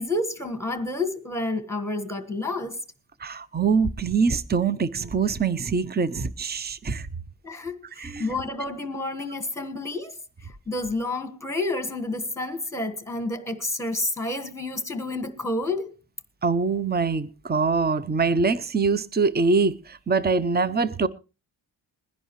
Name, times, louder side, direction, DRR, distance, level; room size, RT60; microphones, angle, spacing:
voice 1, 0.0-2.8 7.4-10.2 10.7-16.0, left 2 dB, 5° left, 1.4 m, -29 dB
voice 2, 3.2-7.1 8.0-8.3 16.4-21.1, right 4 dB, 20° right, 0.6 m, -24 dB
21.0 x 10.5 x 3.1 m
wide cardioid pair, 95°, 48 cm